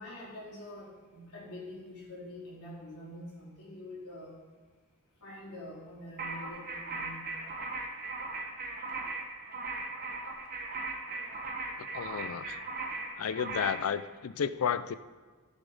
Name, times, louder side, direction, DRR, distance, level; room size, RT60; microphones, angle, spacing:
voice 1, 0.0-4.3 5.2-7.2, left 1 dB, 90° left, -6 dB, 3.8 m, -45 dB
sound 1, 6.2-13.9, right 3 dB, 40° right, 1.3 m, -38 dB
voice 2, 11.7-12.6 13.2-14.9, left 7 dB, 70° left, 15 dB, 0.4 m, -32 dB
15.0 x 7.3 x 3.9 m, 1.4 s
head